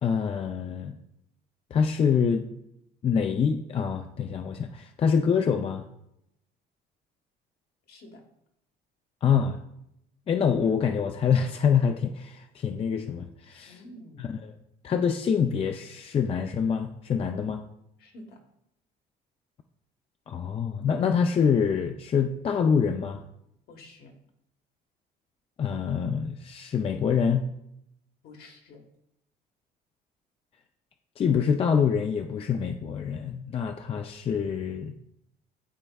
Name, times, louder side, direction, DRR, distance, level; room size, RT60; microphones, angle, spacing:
voice 1, 0.0-1.0 1.7-2.5 3.0-5.8 9.2-9.6 10.3-13.8 14.2-14.5 14.8-17.6 20.3-23.2 25.6-27.4 31.2-34.9, left 7 dB, 35° left, 5 dB, 0.5 m, -26 dB
voice 2, 7.9-8.2 13.7-14.3 18.0-18.4 23.7-24.2 28.2-28.8, left 1 dB, 65° left, 2 dB, 1.4 m, -48 dB
12.0 x 4.1 x 2.3 m, 0.78 s
cardioid pair, 110°, 17 cm